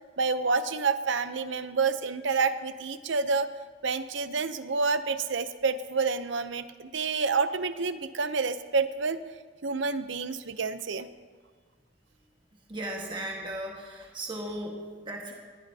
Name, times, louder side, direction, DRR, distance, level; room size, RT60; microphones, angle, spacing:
voice 1, 0.2-3.5 3.8-9.2 9.6-11.1, right 4 dB, 70° right, 12 dB, 0.7 m, -28 dB
voice 2, 12.7-15.3, right 1 dB, 25° right, -1 dB, 1.5 m, -36 dB
20.5 x 15.5 x 2.8 m, 1.5 s
head